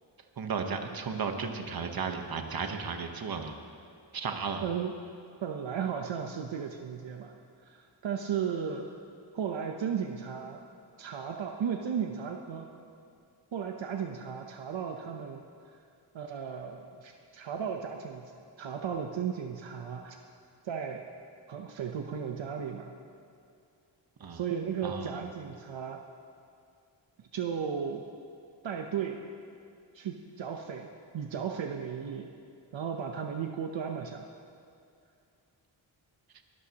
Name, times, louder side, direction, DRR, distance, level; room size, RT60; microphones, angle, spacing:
voice 1, 0.4-3.5 4.1-4.7 24.2-24.4 24.8-25.2, right 5 dB, 50° right, 5 dB, 1.1 m, -34 dB
voice 2, 4.6-4.9 5.4-7.3 7.7-8.9 9.3-10.6 11.0-12.7 13.5-15.4 16.1-18.3 18.6-20.2 20.6-21.0 21.5-22.9 24.3-26.0 27.3-28.1 28.6-29.2 29.9-32.3 32.7-34.3, right 7 dB, 75° right, 3 dB, 0.9 m, -35 dB
22.0 x 12.5 x 2.9 m, 2.4 s
wide cardioid pair, 130°, 46 cm